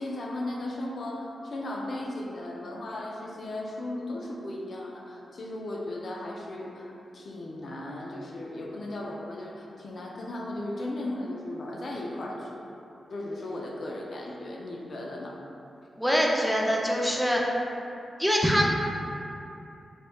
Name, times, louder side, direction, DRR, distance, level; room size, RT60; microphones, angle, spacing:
voice 1, 0.0-12.7 13.1-15.4, left 1 dB, 65° left, -2 dB, 0.4 m, -36 dB
voice 2, 16.0-17.4 18.2-18.7, equal, ahead, -2 dB, 0.4 m, -24 dB
3.0 x 2.9 x 2.2 m, 2.8 s
cardioid pair, 60°, 0 cm